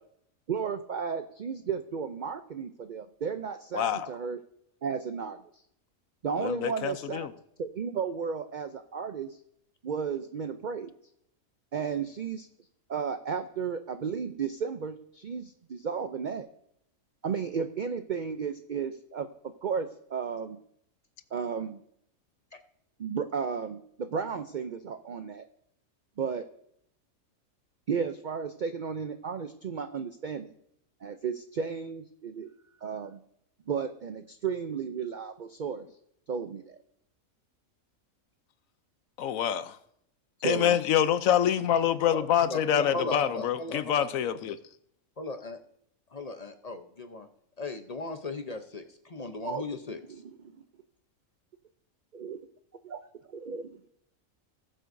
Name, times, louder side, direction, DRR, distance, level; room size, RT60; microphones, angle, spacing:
voice 1, 0.5-4.4 4.8-5.4 6.2-7.3 7.6-9.4 9.8-10.9 11.7-12.5 12.9-16.5 17.2-19.3 19.6-20.6 21.3-21.8 23.0-25.5 26.2-26.5 27.9-30.5 31.0-32.5 32.8-33.2 33.7-35.9 36.3-36.8 40.4-40.8 49.4-49.6 50.1-50.5 52.2-52.4 52.9-53.0 53.4-53.8, right 6 dB, 55° right, 8 dB, 0.5 m, -33 dB
voice 2, 3.7-4.1 6.4-7.3 39.2-39.8 40.4-44.6, left 9 dB, 75° left, 12 dB, 1.1 m, -26 dB
voice 3, 42.1-44.1 45.2-45.6 46.1-47.3 47.6-50.0, left 3 dB, 35° left, 7 dB, 0.7 m, -37 dB
19.5 x 7.6 x 2.6 m, 0.72 s
omnidirectional pair, 1.4 m